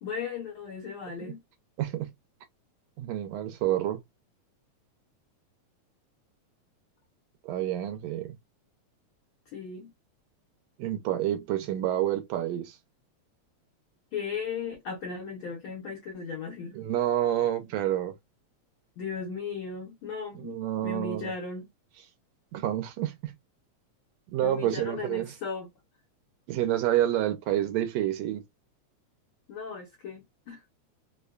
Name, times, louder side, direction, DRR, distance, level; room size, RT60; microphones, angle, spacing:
voice 1, 0.0-1.4 9.5-9.9 14.1-16.8 19.0-21.7 24.4-25.7 29.5-30.6, left 5 dB, 75° left, 1.2 m, -36 dB
voice 2, 1.8-2.1 3.0-4.0 7.4-8.4 10.8-12.8 16.8-18.2 20.4-21.3 22.5-23.3 24.3-25.3 26.5-28.4, right 12 dB, 80° right, 1.8 m, -28 dB
4.9 x 2.2 x 2.3 m
omnidirectional pair, 3.3 m